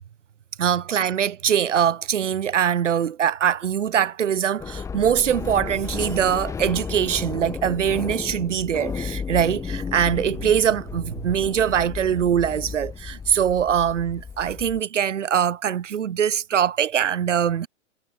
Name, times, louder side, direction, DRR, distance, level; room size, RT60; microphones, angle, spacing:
voice 1, 0.6-17.7, right 9 dB, 80° right, 2.8 m, -22 dB
sound 1, 4.6-14.8, left 6 dB, 10° left, 0.8 m, -33 dB
hypercardioid pair, 135°, 36 cm